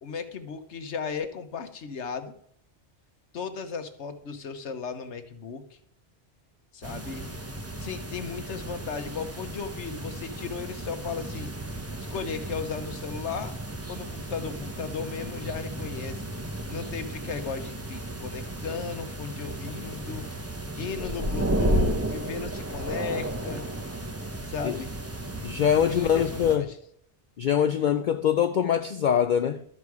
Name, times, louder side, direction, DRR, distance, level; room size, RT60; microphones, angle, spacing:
voice 1, 0.0-2.3 3.3-5.6 6.7-7.3 7.7-11.5 12.1-13.5 13.9-16.2 16.7-20.2 20.8-23.6 24.5-24.9 25.9-26.8, left 6 dB, 80° left, 1.3 m, -35 dB
sound 1, 6.8-26.6, right 1 dB, 15° right, 0.8 m, -33 dB
voice 2, 25.4-26.7 27.4-29.7, left 8 dB, 55° left, 0.6 m, -23 dB
12.5 x 7.4 x 4.8 m
omnidirectional pair, 1.2 m